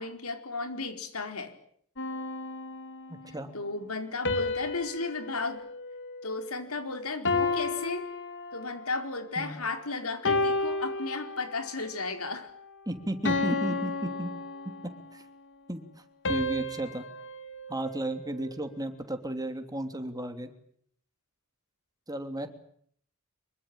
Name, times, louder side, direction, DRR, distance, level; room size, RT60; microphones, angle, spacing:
voice 1, 0.0-1.6 3.5-5.6 6.2-8.0 8.5-12.5, left 3 dB, 80° left, 7 dB, 4.6 m, -34 dB
sound 1, 2.0-3.3 4.2-6.8 7.2-9.0 9.5-9.8 10.2-11.8 12.3-12.5 13.2-15.1 16.2-18.6, left 3 dB, 60° left, 3.2 m, -33 dB
voice 2, 3.1-3.5 9.4-9.6 12.9-14.3 14.8-15.2 15.7-15.9 16.2-17.1 17.7-20.5 22.1-22.5, right 1 dB, 15° right, 7 dB, 3.1 m, -34 dB
25.5 x 23.0 x 8.9 m, 0.65 s
head